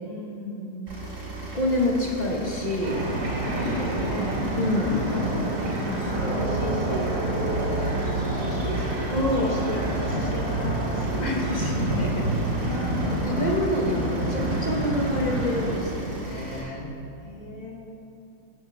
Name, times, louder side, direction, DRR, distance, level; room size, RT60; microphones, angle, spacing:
voice 1, 0.0-0.8 3.4-4.4 4.9-5.5 6.0-7.1 7.4-8.0 8.3-9.0 9.3-11.3 12.5-13.1 17.2-17.7, left 1 dB, 50° left, -6 dB, 2.7 m, -35 dB
sound 1, 0.9-16.6, right 3 dB, 35° right, 2.8 m, -38 dB
voice 2, 1.4-3.0 4.6-4.9 5.8-6.3 9.1-9.5 11.2-12.3 13.2-16.9, left 1 dB, 25° left, -1 dB, 1.3 m, -27 dB
sound 2, 2.8-15.7, right 1 dB, 55° right, 2.6 m, -28 dB
15.5 x 7.4 x 3.5 m, 2.8 s
omnidirectional pair, 1.9 m